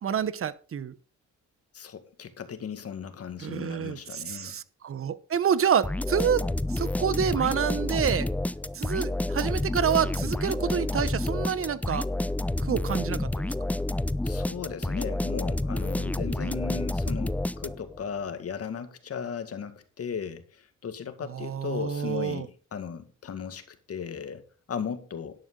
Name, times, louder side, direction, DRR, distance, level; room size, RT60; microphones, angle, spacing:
voice 1, 0.0-0.9 3.4-6.4 6.7-8.3 8.7-12.0 12.6-13.3 21.3-22.5, right 8 dB, 45° right, 1.1 m, -28 dB
voice 2, 1.7-4.6 14.2-25.4, left 7 dB, 50° left, 2.1 m, -36 dB
sound 1, 5.8-18.0, left 1 dB, 5° left, 0.5 m, -29 dB
11.0 x 11.0 x 3.9 m
cardioid pair, 90°, 30 cm